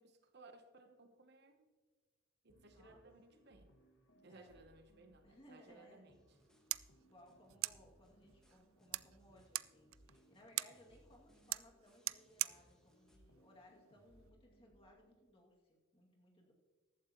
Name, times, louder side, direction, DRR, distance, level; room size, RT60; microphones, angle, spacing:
voice 1, 0.0-1.7 2.4-3.7 4.2-6.2, right 3 dB, 55° right, 7 dB, 1.0 m, -61 dB
sound 1, 2.5-15.3, equal, 65° left, 1.6 m, -69 dB
voice 2, 5.2-6.2 6.7-16.5, left 1 dB, 25° left, -2 dB, 2.4 m, -64 dB
sound 2, 6.1-13.2, equal, 5° left, 1.2 m, -76 dB
sound 3, 6.3-14.3, right 17 dB, 85° right, 0.3 m, -46 dB
14.5 x 12.0 x 3.0 m, 1.4 s
head